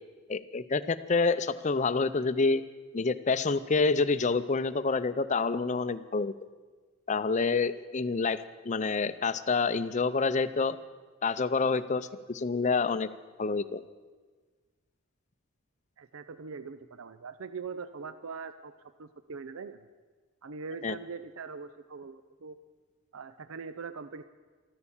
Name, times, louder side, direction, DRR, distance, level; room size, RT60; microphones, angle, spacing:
voice 1, 0.3-2.6 2.9-6.3 7.1-10.8 11.2-13.1 13.4-13.8 20.8-20.9, left 4 dB, 35° left, 14 dB, 0.5 m, -28 dB
voice 2, 16.0-18.7 19.0-19.8 20.4-22.6 23.1-24.2, right 5 dB, 70° right, 11 dB, 0.5 m, -42 dB
14.0 x 13.5 x 7.2 m, 1.4 s
head